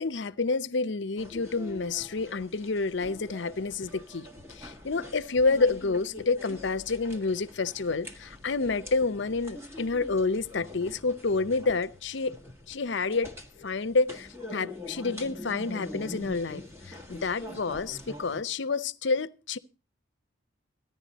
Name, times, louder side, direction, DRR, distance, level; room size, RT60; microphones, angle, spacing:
voice 1, 0.0-4.3 4.5-12.4 12.7-13.3 13.6-19.6, left 3 dB, 70° left, 0.7 m, -29 dB
sound 1, 1.2-18.4, left 1 dB, 10° right, 1.5 m, -44 dB
15.5 x 10.5 x 4.1 m
head